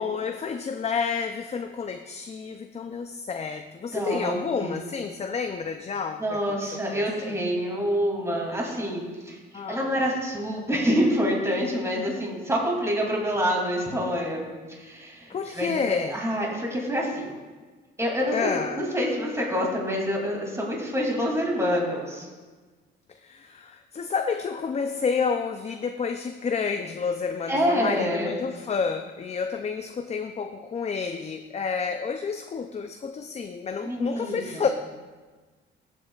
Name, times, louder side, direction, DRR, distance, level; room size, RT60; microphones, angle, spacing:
voice 1, 0.0-7.4 9.5-10.0 15.3-16.2 18.3-18.8 23.2-34.7, left 5 dB, 35° left, 7 dB, 0.5 m, -30 dB
voice 2, 3.9-4.8 6.2-17.3 18.0-22.3 27.5-28.3 33.8-34.6, equal, 15° right, -2 dB, 2.8 m, -27 dB
15.5 x 8.2 x 2.4 m, 1.4 s
cardioid pair, 90°, 20 cm